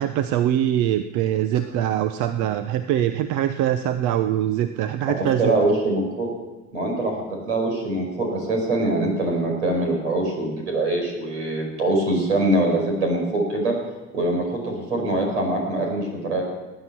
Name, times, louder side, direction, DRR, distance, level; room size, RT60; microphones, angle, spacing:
voice 1, 0.0-5.5, right 11 dB, 60° right, 10 dB, 0.9 m, -23 dB
voice 2, 5.2-6.3 6.7-7.1 7.5-13.7 14.1-16.4, right 2 dB, 85° right, 1 dB, 5.3 m, -23 dB
19.5 x 9.9 x 6.0 m, 1.2 s
hypercardioid pair, 65°, 34 cm